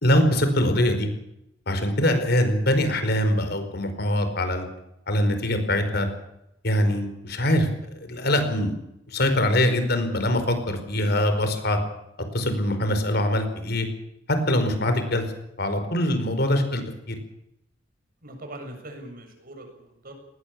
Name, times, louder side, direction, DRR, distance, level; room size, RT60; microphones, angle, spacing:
voice 1, 0.0-1.1 1.7-4.7 5.1-6.1 6.6-7.7 7.9-8.7 9.1-11.8 12.3-13.9 14.3-15.2 15.6-16.8 17.1-17.2, left 1 dB, 60° left, 8 dB, 4.9 m, -23 dB
voice 2, 18.2-20.1, right 1 dB, 50° right, 5 dB, 7.1 m, -41 dB
20.0 x 19.5 x 8.7 m, 0.82 s
head